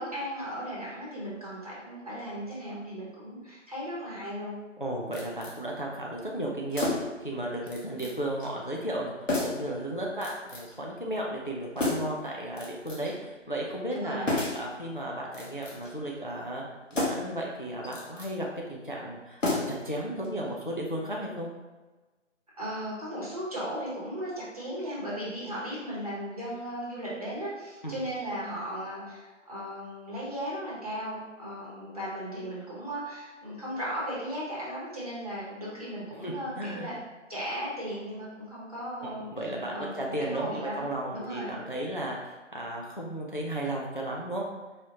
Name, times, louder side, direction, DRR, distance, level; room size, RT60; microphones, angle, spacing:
voice 1, 0.0-4.5 13.9-14.4 22.6-37.0 37.3-39.3 39.7-41.6, equal, 30° right, -8 dB, 1.1 m, -36 dB
voice 2, 4.8-9.1 9.4-14.3 14.5-16.6 16.9-21.5 27.8-28.0 36.2-36.9 39.0-44.5, right 1 dB, 40° left, -2 dB, 0.4 m, -34 dB
sound 1, 5.1-5.6 6.7-7.2 7.7-8.1 8.4-8.5 9.3-9.7 10.2-10.8 11.8-12.2 12.6-13.2 14.3-14.7 15.3-15.9 16.9-17.4 17.8-18.3 19.4-19.9 20.2-20.3, left 2 dB, 75° left, 1.2 m, -31 dB
4.8 x 2.8 x 2.8 m, 1.2 s
figure-of-eight pair, 170°, 38 cm